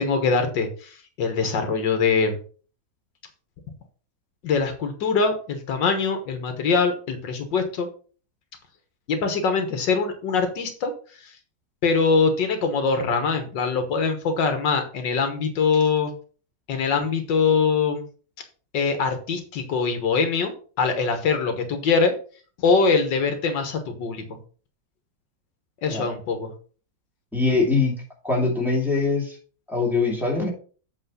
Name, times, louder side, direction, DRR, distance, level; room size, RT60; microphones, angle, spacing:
voice 1, 0.0-2.4 4.4-7.9 9.1-10.9 11.2-11.3 11.8-16.1 16.7-18.0 18.7-22.1 22.6-24.4 25.8-26.5, left 4 dB, 75° left, 7 dB, 1.8 m, -23 dB
voice 2, 27.3-28.0 28.2-29.4 29.7-30.5, left 3 dB, ahead, -3 dB, 2.9 m, -22 dB
8.1 x 4.3 x 5.6 m, 0.40 s
omnidirectional pair, 2.0 m